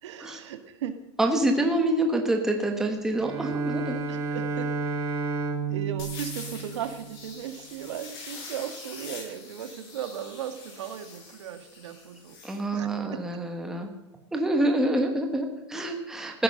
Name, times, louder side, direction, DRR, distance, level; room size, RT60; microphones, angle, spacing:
voice 1, 0.0-1.0 4.1-5.1 5.7-12.4 12.7-13.3, right 9 dB, 75° right, 9 dB, 1.8 m, -37 dB
voice 2, 1.2-4.0 12.4-13.9 14.3-16.4, right 1 dB, 5° right, 3 dB, 1.2 m, -26 dB
Bowed string instrument, 3.1-7.3, right 4 dB, 20° right, 1.6 m, -31 dB
sound 1, 6.0-12.6, left 4 dB, 55° left, 7.0 m, -44 dB
15.0 x 9.9 x 6.5 m, 0.98 s
supercardioid pair, 170°, 15 cm